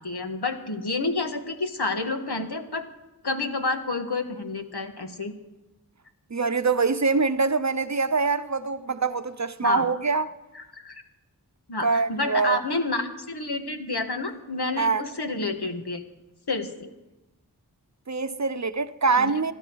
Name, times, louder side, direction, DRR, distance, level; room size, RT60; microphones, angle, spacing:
voice 1, 0.0-2.8 3.2-5.3 9.6-9.9 10.7-11.0 11.7-16.0 16.5-16.9 19.2-19.3, left 3 dB, 80° left, 1.7 m, -29 dB
voice 2, 6.3-10.3 11.8-12.6 14.8-15.0 18.1-19.5, right 4 dB, 45° right, 0.8 m, -24 dB
25.5 x 11.5 x 4.7 m
wide cardioid pair, 50°, 39 cm